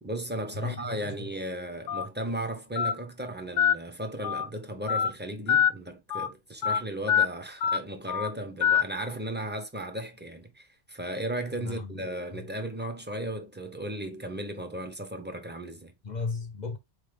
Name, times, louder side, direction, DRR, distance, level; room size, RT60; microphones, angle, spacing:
voice 1, 0.0-15.9, right 1 dB, 10° right, 0.7 m, -35 dB
voice 2, 0.5-1.2 11.6-11.9 12.3-12.5 16.0-16.8, left 4 dB, 45° left, 0.7 m, -35 dB
Telephone, 1.9-2.0 2.8-2.9 3.6-3.7 4.2-4.5 4.9-5.1 5.5-5.7 6.1-6.3 6.6-6.8 7.1-7.3 7.6-7.8 8.1-8.3 8.6-8.8, left 8 dB, 90° left, 0.9 m, -24 dB
4.3 x 3.2 x 3.6 m
omnidirectional pair, 1.2 m